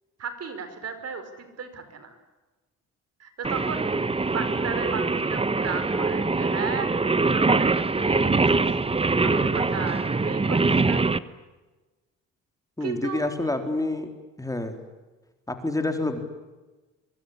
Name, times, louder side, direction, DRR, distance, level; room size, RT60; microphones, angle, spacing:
voice 1, 0.2-2.2 3.2-4.0 4.2-8.6 9.2-11.0 12.8-13.3, right 5 dB, 55° right, 9 dB, 5.2 m, -35 dB
Singing, 3.4-11.2, right 3 dB, 20° right, 1.2 m, -23 dB
voice 2, 12.8-14.1 14.4-14.8 15.5-16.2, left 2 dB, 10° left, 6 dB, 3.9 m, -28 dB
24.0 x 23.5 x 10.0 m, 1.2 s
cardioid pair, 90°, 30 cm